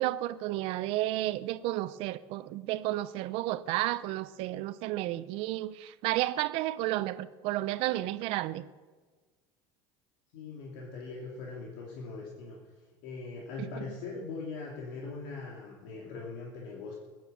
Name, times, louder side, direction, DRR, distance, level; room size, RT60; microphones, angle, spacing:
voice 1, 0.0-8.6 13.6-13.7, right 16 dB, 65° right, 0.6 m, -32 dB
voice 2, 10.3-12.6 13.0-17.0, left 4 dB, 80° left, 2.7 m, -41 dB
15.5 x 9.4 x 8.6 m
cardioid pair, 130°, 11 cm